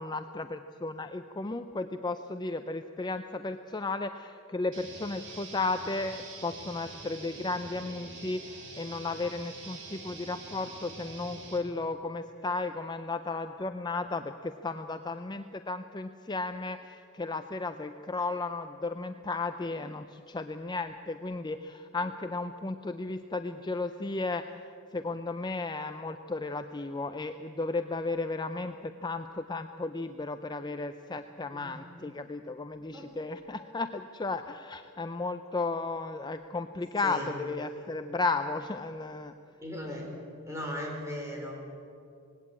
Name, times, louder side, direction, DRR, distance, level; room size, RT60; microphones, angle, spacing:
voice 1, 0.0-24.4 24.9-39.3, left 3 dB, 20° left, 8 dB, 0.5 m, -34 dB
sound 1, 4.7-11.6, right 3 dB, 55° right, 3.1 m, -45 dB
voice 2, 39.6-40.1 40.5-41.5, equal, 15° right, 0 dB, 4.5 m, -37 dB
20.0 x 16.5 x 8.7 m, 2.5 s
head